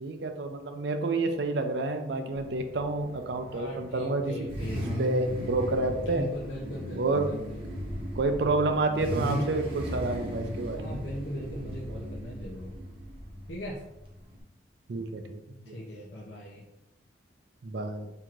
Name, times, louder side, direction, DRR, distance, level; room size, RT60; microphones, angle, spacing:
voice 1, 0.0-4.2 5.0-6.3 7.0-7.3 8.2-11.0 14.9-15.7 17.6-18.1, right 3 dB, 65° right, 7 dB, 0.4 m, -29 dB
Car / Idling / Accelerating revving vroom, 2.3-14.4, equal, 30° right, 0.8 m, -36 dB
voice 2, 3.5-4.9 6.0-7.6 10.7-12.7 13.5-13.8 15.7-16.6, equal, 75° left, -5 dB, 0.6 m, -39 dB
4.4 x 2.8 x 2.5 m, 0.91 s
head